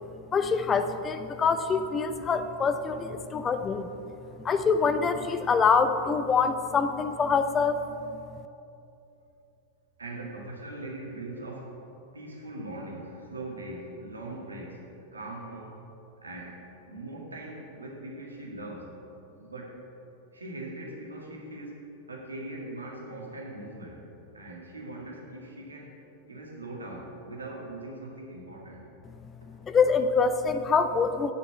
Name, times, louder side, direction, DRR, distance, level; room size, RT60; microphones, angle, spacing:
voice 1, 0.3-3.9 4.4-7.8 29.6-31.3, left 5 dB, 20° left, 9 dB, 0.5 m, -25 dB
voice 2, 10.0-11.8 12.1-15.8 16.2-19.0 19.4-19.8 20.3-21.8 22.1-24.0 24.3-26.0 26.3-28.8 29.5-29.7, right 2 dB, 75° right, -2 dB, 2.0 m, -41 dB
8.9 x 6.7 x 7.4 m, 2.9 s
figure-of-eight pair, 90°, 0 cm